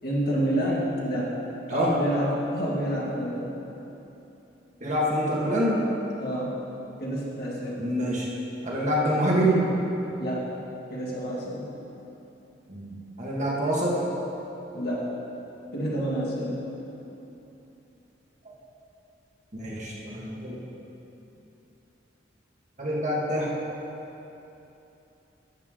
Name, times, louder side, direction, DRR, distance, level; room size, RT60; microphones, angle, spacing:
voice 1, 0.0-1.3 1.7-3.7 6.2-6.5 7.0-7.8 10.2-10.5 10.9-11.7 14.7-15.1 15.7-16.6, equal, 60° left, -5 dB, 1.9 m, -28 dB
voice 2, 4.8-5.8 7.8-8.3 8.6-9.7 12.7-14.0 19.5-20.6 22.8-23.5, equal, 40° right, -5 dB, 1.7 m, -26 dB
13.0 x 6.8 x 3.8 m, 3.0 s
head